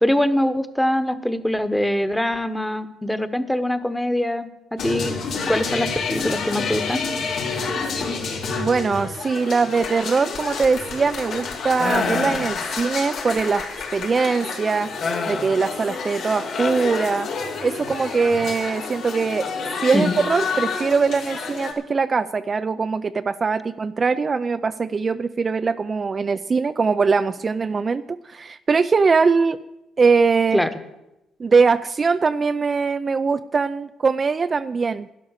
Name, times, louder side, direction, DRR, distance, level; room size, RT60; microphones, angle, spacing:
voice 1, 0.0-5.1 5.5-7.0 19.9-20.2 30.5-30.7, left 1 dB, 5° left, 11 dB, 1.1 m, -23 dB
sound 1, 4.8-21.7, left 4 dB, 70° left, 3.6 m, -29 dB
voice 2, 8.5-14.9 15.3-17.3 17.6-19.5 19.8-29.6 30.0-30.6 31.4-35.1, right 4 dB, 35° right, 11 dB, 0.4 m, -21 dB
sound 2, 11.8-13.3 15.0-17.7, left 4 dB, 50° left, 2.5 m, -29 dB
12.0 x 10.5 x 6.5 m, 0.92 s
cardioid pair, 90°, 0 cm